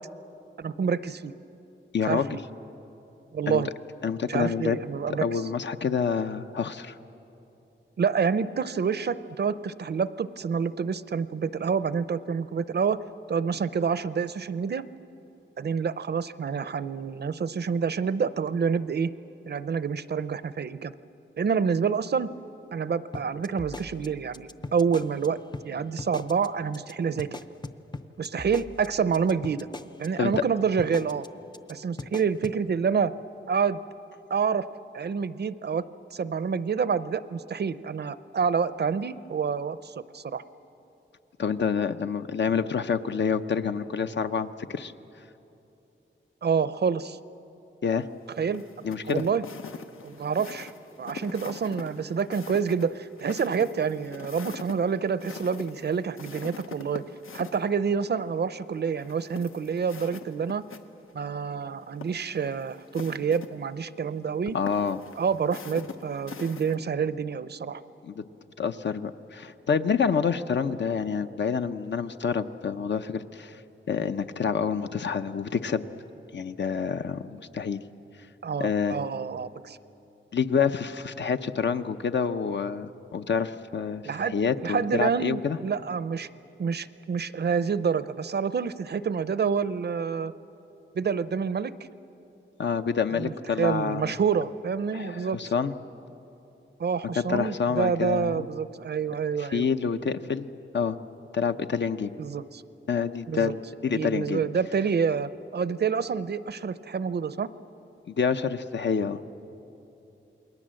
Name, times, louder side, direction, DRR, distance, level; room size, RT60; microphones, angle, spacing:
voice 1, 0.6-1.3 2.1-2.4 3.3-3.7 4.3-5.4 8.0-13.0 13.3-14.8 15.6-19.1 19.5-20.9 21.4-22.3 22.7-25.4 25.6-27.4 28.2-29.7 30.0-31.2 31.7-33.1 33.5-33.8 34.3-34.7 34.9-35.8 36.1-40.4 46.4-47.2 48.4-49.4 50.0-50.7 51.0-57.0 57.3-60.6 61.1-64.6 65.2-67.8 78.4-79.8 84.0-84.3 84.6-86.3 86.6-90.3 90.9-91.7 93.1-95.4 96.8-99.7 102.2-102.6 103.3-103.5 103.9-107.5, right 6 dB, 50° right, 15 dB, 0.6 m, -28 dB
voice 2, 1.9-2.3 3.5-3.6 4.0-4.8 5.2-7.0 30.2-30.3 41.4-44.9 47.8-48.1 48.8-49.2 64.5-65.0 68.0-68.2 68.6-73.6 73.9-75.8 76.3-77.8 78.6-79.0 80.3-85.6 92.6-94.1 94.9-95.7 97.2-98.4 99.4-100.5 100.7-101.0 101.3-102.1 102.9-104.4 108.1-109.2, left 6 dB, 60° left, 9 dB, 0.7 m, -27 dB
sound 1, 23.1-25.3 25.5-25.7 26.0-26.5 26.7-26.9 27.2-30.1 30.3-30.5 30.8-31.3 31.5-31.7 32.0-32.6, left 2 dB, 20° left, 0.6 m, -38 dB
sound 2, 48.5-57.6 59.0-60.8 61.1-61.2 61.9-63.5 64.7-66.8, left 5 dB, 80° left, 1.1 m, -43 dB
28.5 x 21.0 x 7.6 m, 2.9 s
wide cardioid pair, 165°, 21 cm